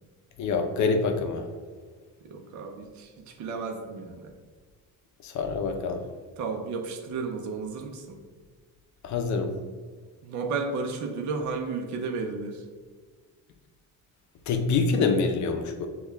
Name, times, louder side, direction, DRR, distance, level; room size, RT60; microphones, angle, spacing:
voice 1, 0.4-1.5 5.2-6.0 9.0-9.5 14.5-15.9, left 4 dB, 55° left, 6 dB, 0.6 m, -26 dB
voice 2, 2.3-4.3 6.4-8.2 10.2-12.6, right 4 dB, 55° right, 3 dB, 0.6 m, -33 dB
6.4 x 2.3 x 3.4 m, 1.5 s
cardioid pair, 170°, 34 cm